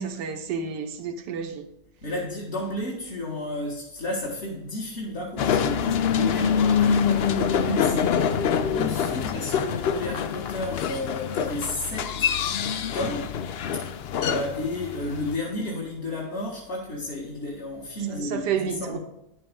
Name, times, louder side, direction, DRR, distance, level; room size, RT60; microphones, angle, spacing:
voice 1, 0.0-1.7 18.1-19.0, right 7 dB, 90° right, 1.5 m, -30 dB
voice 2, 2.0-8.0 8.3-12.3 12.9-13.4 13.7-13.8 14.2-19.0, left 1 dB, 40° left, 2.2 m, -32 dB
sound 1, 5.4-15.4, left 7 dB, 75° left, 0.5 m, -25 dB
10.5 x 7.7 x 3.7 m
omnidirectional pair, 1.7 m